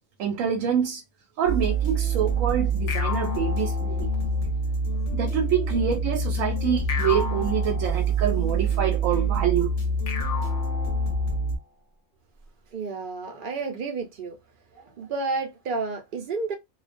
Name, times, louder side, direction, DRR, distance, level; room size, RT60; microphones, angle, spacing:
voice 1, 0.2-1.0 1.4-4.1 5.1-9.7, right 8 dB, 85° right, 1.0 m, -26 dB
sound 1, 1.5-11.6, right 2 dB, 35° left, 0.6 m, -26 dB
sound 2, 2.9-4.5 6.9-8.5 10.1-11.6, left 4 dB, 70° left, 0.9 m, -35 dB
voice 2, 12.7-14.4 14.7-16.6, right 3 dB, 55° right, 0.6 m, -31 dB
2.4 x 2.2 x 2.4 m
omnidirectional pair, 1.3 m